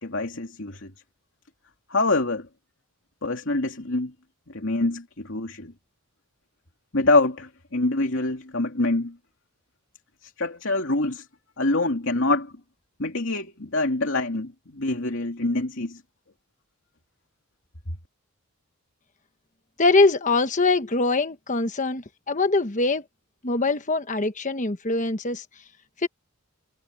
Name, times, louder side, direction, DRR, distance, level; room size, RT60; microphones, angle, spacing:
voice 1, 0.0-0.9 1.9-2.5 3.2-4.1 4.5-5.7 6.9-9.2 10.2-11.3 11.6-12.5 13.0-16.0, left 2 dB, 60° left, 3.0 m, -25 dB
voice 2, 19.8-23.0 23.4-25.4 26.0-26.1, left 3 dB, 35° left, 1.2 m, -23 dB
head